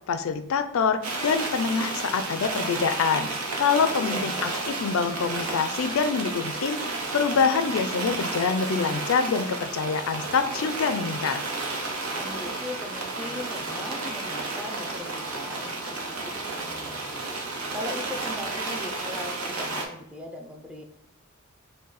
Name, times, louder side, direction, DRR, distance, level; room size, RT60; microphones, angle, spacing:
voice 1, 0.1-3.3 3.6-6.8 7.1-11.4, left 5 dB, 65° left, 10 dB, 0.4 m, -25 dB
sound 1, 1.0-19.9, right 3 dB, 75° right, 0.9 m, -32 dB
voice 2, 4.0-4.6 12.2-17.2 17.7-20.8, left 1 dB, 5° right, 3 dB, 0.4 m, -39 dB
5.2 x 2.2 x 4.0 m, 0.74 s
head